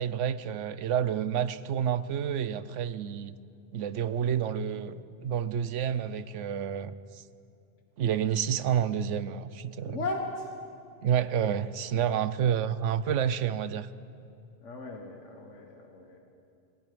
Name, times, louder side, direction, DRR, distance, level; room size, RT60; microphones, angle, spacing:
voice 1, 0.0-3.3 3.7-7.2 8.0-10.0 11.0-13.9, right 8 dB, 80° right, 15 dB, 1.0 m, -29 dB
voice 2, 9.9-10.5 14.6-16.2, left 2 dB, 80° left, 1 dB, 1.9 m, -36 dB
28.0 x 21.0 x 5.2 m, 2.6 s
omnidirectional pair, 1.2 m